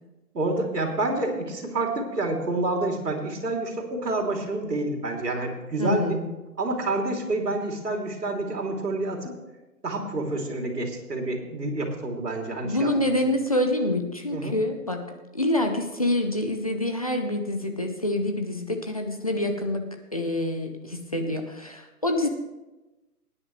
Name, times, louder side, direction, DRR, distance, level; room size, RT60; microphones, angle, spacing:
voice 1, 0.3-6.2 6.6-9.3 9.8-12.9 14.3-14.6, right 2 dB, 80° right, 2 dB, 3.0 m, -28 dB
voice 2, 5.8-6.3 12.6-15.0 15.3-19.8 20.1-22.3, left 1 dB, 25° left, 4 dB, 0.6 m, -26 dB
19.5 x 9.9 x 3.2 m, 1.1 s
hypercardioid pair, 165°, 47 cm